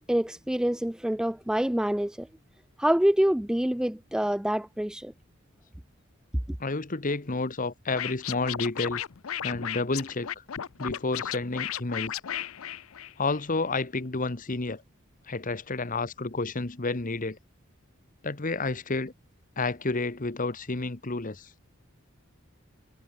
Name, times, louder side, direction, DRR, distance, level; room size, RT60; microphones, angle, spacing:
voice 1, 0.1-2.3 2.8-5.1, right 1 dB, 5° right, 0.3 m, -26 dB
voice 2, 6.6-9.0 9.4-10.4 10.8-12.2 13.2-14.8 15.3-17.4 18.2-19.1 19.6-21.5, left 3 dB, 40° left, 1.2 m, -30 dB
Scratching (performance technique), 7.9-13.4, left 10 dB, 90° left, 0.6 m, -34 dB
head